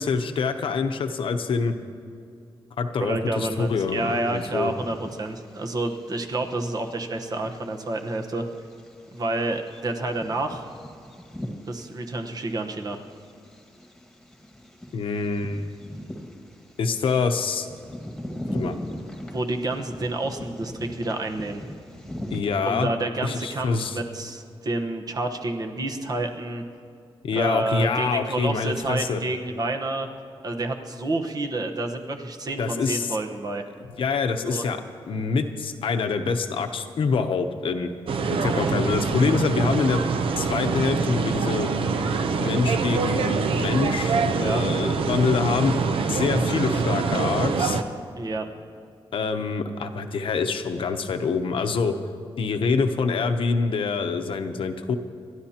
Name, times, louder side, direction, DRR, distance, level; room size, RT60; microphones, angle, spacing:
voice 1, 0.0-1.8 2.8-4.7 14.9-15.7 16.8-17.7 18.5-18.8 22.3-22.9 23.2-24.0 27.2-29.2 32.6-33.2 34.0-34.8 35.1-37.9 38.4-40.0 40.4-41.7 42.4-45.8 46.1-47.8 49.1-52.0 52.4-54.9, left 5 dB, 65° left, 7 dB, 0.8 m, -25 dB
voice 2, 3.0-8.5 9.1-10.7 11.7-13.0 19.3-21.6 22.6-26.6 27.3-30.1 30.4-33.6 34.4-34.6 44.3-44.6 48.2-48.5, right 2 dB, 40° right, 3 dB, 1.1 m, -29 dB
Bird vocalization bird call bird song, 3.5-22.4, equal, 5° left, 1.7 m, -40 dB
sound 1, 38.1-47.8, right 4 dB, 70° right, 0.7 m, -25 dB
28.5 x 12.5 x 2.9 m, 2.4 s
wide cardioid pair, 145°, 10 cm